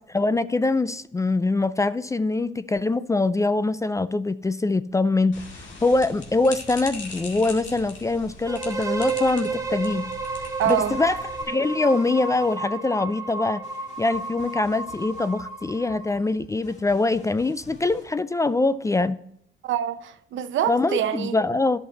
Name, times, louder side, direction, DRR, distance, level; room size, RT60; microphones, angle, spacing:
voice 1, 0.1-5.5 5.8-10.1 10.7-11.2 11.5-13.6 14.0-19.2 20.7-21.8, left 3 dB, 15° left, 0.3 m, -23 dB
sound 1, 5.3-11.4, left 3 dB, 70° left, 2.2 m, -40 dB
sound 2, 8.5-16.3, right 4 dB, 15° right, 0.9 m, -32 dB
sound 3, 9.1-9.9 10.6-13.1 13.6-18.1, left 3 dB, 35° left, 1.8 m, -52 dB
voice 2, 10.6-11.0 19.6-21.4, right 10 dB, 75° right, 0.7 m, -25 dB
11.0 x 6.0 x 4.0 m
cardioid pair, 90°, 20 cm